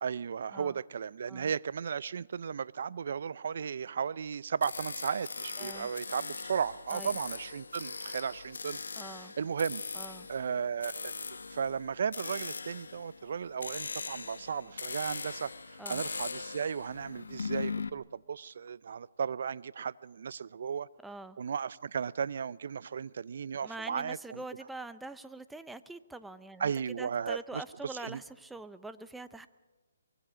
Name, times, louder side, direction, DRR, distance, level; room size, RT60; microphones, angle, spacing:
voice 1, 0.0-8.8 9.2-9.8 10.3-20.9 21.4-24.4 26.6-28.2, right 7 dB, 60° right, 0.6 m, -35 dB
sound 1, 4.6-17.9, left 4 dB, 85° left, 0.9 m, -40 dB
voice 2, 5.6-5.9 6.9-7.2 9.0-9.3 9.9-10.3 15.8-16.0 21.0-21.4 23.6-26.7 27.0-29.5, right 2 dB, 5° right, 0.7 m, -44 dB
24.0 x 23.5 x 5.1 m
hypercardioid pair, 155°, 0 cm